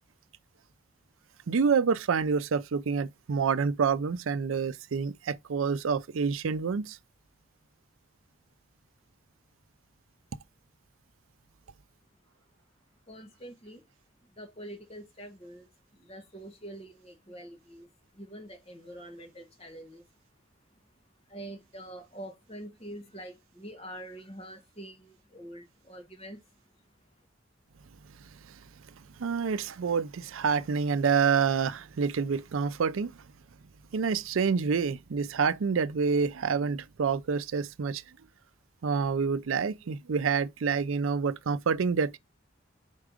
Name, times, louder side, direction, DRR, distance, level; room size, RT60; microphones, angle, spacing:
voice 1, 1.5-7.0 29.2-33.1 33.9-38.0 38.8-42.2, right 5 dB, 90° right, 0.5 m, -27 dB
voice 2, 13.1-13.8 14.4-15.7 15.9-17.9 18.1-20.0 21.3-26.4, right 1 dB, 30° left, 1.5 m, -45 dB
4.8 x 4.5 x 4.9 m
head